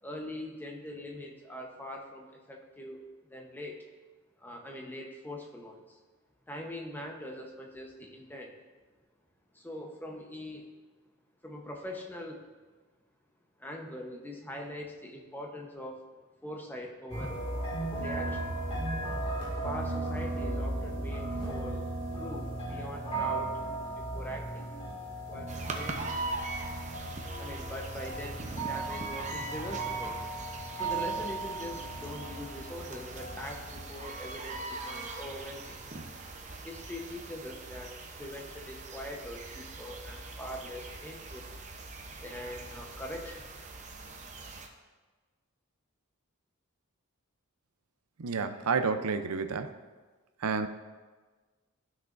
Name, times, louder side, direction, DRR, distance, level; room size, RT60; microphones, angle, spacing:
voice 1, 0.0-3.0 3.3-3.8 4.4-6.0 6.5-8.5 9.5-10.6 11.4-12.4 13.6-16.0 16.4-17.4 18.0-18.5 19.6-23.5 23.9-24.6 25.3-26.1 27.4-30.2 30.7-36.0 36.6-41.5 42.0-43.5, left 1 dB, 10° left, 0 dB, 0.9 m, -42 dB
sound 1, 17.1-34.3, right 2 dB, 25° left, 2.1 m, -36 dB
sound 2, 25.5-44.7, right 3 dB, 35° right, 0.7 m, -42 dB
voice 2, 48.2-49.8 50.4-50.7, right 5 dB, 75° right, 9 dB, 0.6 m, -30 dB
13.0 x 6.1 x 2.6 m, 1.3 s
head